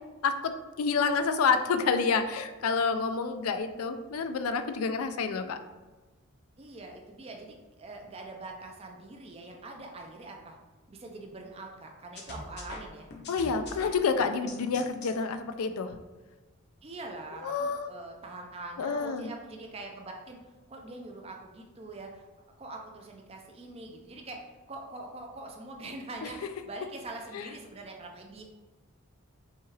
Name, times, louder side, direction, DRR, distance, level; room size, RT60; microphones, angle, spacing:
voice 1, 0.2-5.6 13.3-16.0 17.4-17.9 18.8-19.3 27.3-27.5, left 5 dB, 85° left, 8 dB, 0.4 m, -28 dB
voice 2, 6.6-10.6 10.9-13.1 16.8-20.4 20.7-22.3 22.6-24.4 24.7-28.4, right 2 dB, 30° right, 2 dB, 0.4 m, -43 dB
sound 1, 12.2-15.1, left 2 dB, 50° left, 0.7 m, -43 dB
5.5 x 2.4 x 3.2 m, 1.2 s
head